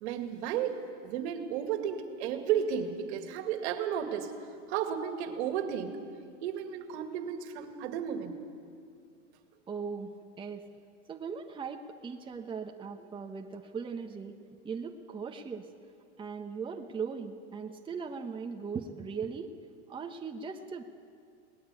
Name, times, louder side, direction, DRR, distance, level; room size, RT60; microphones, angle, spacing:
voice 1, 0.0-4.3 4.7-6.0 6.4-8.4, right 8 dB, 60° right, 7 dB, 2.3 m, -33 dB
voice 2, 9.7-10.7 11.1-14.4 14.6-15.7 16.2-19.5 19.9-20.8, right 5 dB, 15° right, 3 dB, 1.1 m, -39 dB
22.0 x 19.0 x 8.4 m, 2.4 s
hypercardioid pair, 120°, 37 cm